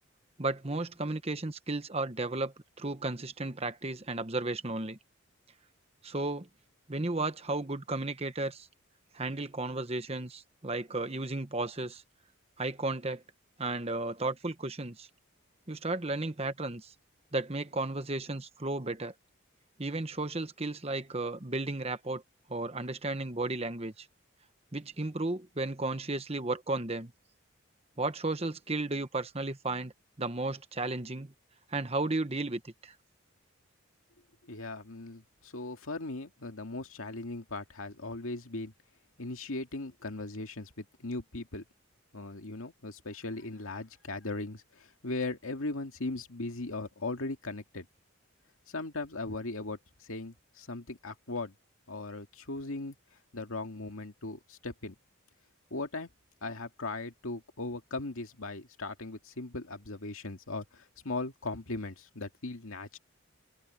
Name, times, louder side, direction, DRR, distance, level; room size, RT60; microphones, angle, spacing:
voice 1, 0.4-5.0 6.0-6.5 6.9-8.7 9.1-12.0 12.6-13.2 13.6-15.1 15.7-16.9 17.3-19.1 19.8-22.2 22.5-24.1 24.7-27.1 28.0-29.9 30.2-31.3 31.7-32.9, right 2 dB, 30° right, 1.1 m, -34 dB
voice 2, 34.5-38.7 39.2-41.6 42.1-47.9 48.7-51.5 51.9-53.0 53.3-54.9 55.7-56.1 56.4-63.0, left 2 dB, 85° left, 2.2 m, -38 dB
head